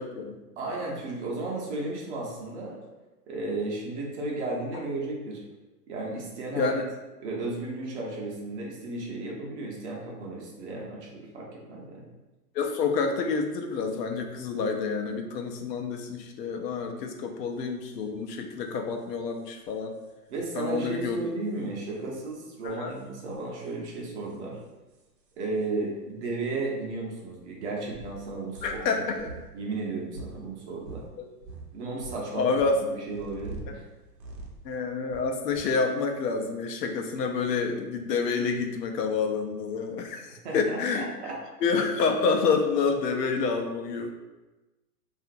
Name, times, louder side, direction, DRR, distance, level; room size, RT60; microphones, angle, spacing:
voice 1, 0.0-0.4 4.7-4.8 6.6-6.9 12.5-19.9 20.5-21.2 22.6-22.9 28.6-29.2 31.2-31.3 32.3-32.8 34.6-41.1 41.6-44.1, left 4 dB, 80° left, 3 dB, 0.6 m, -28 dB
voice 2, 0.6-2.8 3.3-5.4 5.9-6.7 7.2-12.0 20.3-24.6 25.4-29.3 29.5-31.0 31.7-32.6 32.9-33.8 40.4-41.4, right 2 dB, 45° right, -2 dB, 0.7 m, -34 dB
sound 1, 17.6-17.7 17.9-18.1 18.3-18.4 18.6-25.7 26.5-26.6 26.8-31.1 31.4-35.7, right 3 dB, 85° right, 0.7 m, -46 dB
2.8 x 2.5 x 2.5 m, 1.1 s
hypercardioid pair, 140°, 48 cm